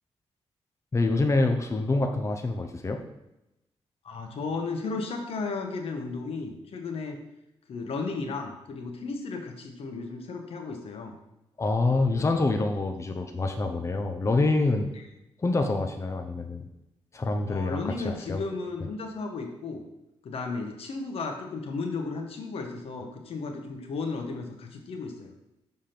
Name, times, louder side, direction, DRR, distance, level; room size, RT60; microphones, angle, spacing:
voice 1, 0.9-3.0 11.6-14.9 15.4-16.7 17.1-18.4, left 2 dB, 30° left, 5 dB, 0.7 m, -26 dB
voice 2, 4.0-7.2 7.7-11.2 15.0-15.1 17.5-19.8 20.2-25.3, left 4 dB, 75° left, 4 dB, 1.1 m, -34 dB
6.6 x 3.6 x 5.8 m, 0.90 s
cardioid pair, 95°, 10 cm